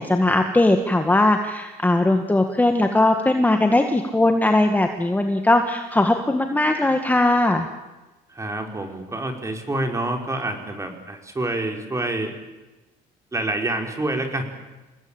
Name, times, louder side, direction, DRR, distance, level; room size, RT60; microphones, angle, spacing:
voice 1, 0.0-7.7, left 2 dB, 10° left, 5 dB, 1.8 m, -19 dB
voice 2, 8.3-12.3 13.3-14.5, right 2 dB, 15° right, 4 dB, 4.9 m, -27 dB
28.5 x 19.0 x 8.9 m, 1.1 s
cardioid pair, 110°, 17 cm